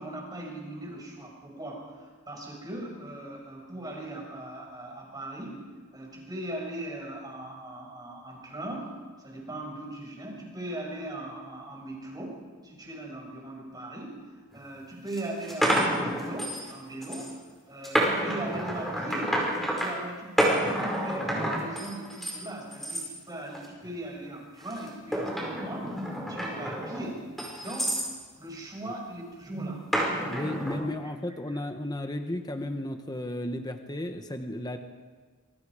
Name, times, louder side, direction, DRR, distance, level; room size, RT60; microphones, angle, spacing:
voice 1, 0.0-5.6 5.9-8.9 9.2-14.2 14.5-17.4 17.7-19.4 19.8-28.0 28.4-29.8 31.5-31.6, right 1 dB, 20° right, -1 dB, 6.3 m, -39 dB
sound 1, 14.5-14.6 15.1-16.7 17.0-17.3 17.8-19.9 20.4-22.4 22.7-23.1 23.5-23.9 24.7-28.1 29.9-30.8, equal, ahead, 5.4 m, -29 dB
voice 2, 30.3-34.8, left 1 dB, 20° left, 6 dB, 1.1 m, -33 dB
27.5 x 24.0 x 5.0 m, 1.4 s
head